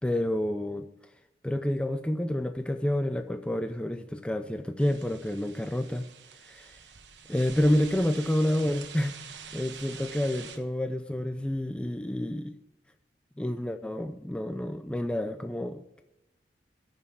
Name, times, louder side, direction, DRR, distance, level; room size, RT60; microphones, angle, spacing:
voice 1, 0.0-0.9 1.4-6.0 6.5-6.8 7.3-12.5 13.4-16.0, left 1 dB, 5° left, 8 dB, 0.4 m, -29 dB
sound 1, 4.8-10.6, right 6 dB, 85° right, 1.1 m, -46 dB
9.0 x 6.5 x 8.6 m, 0.94 s
head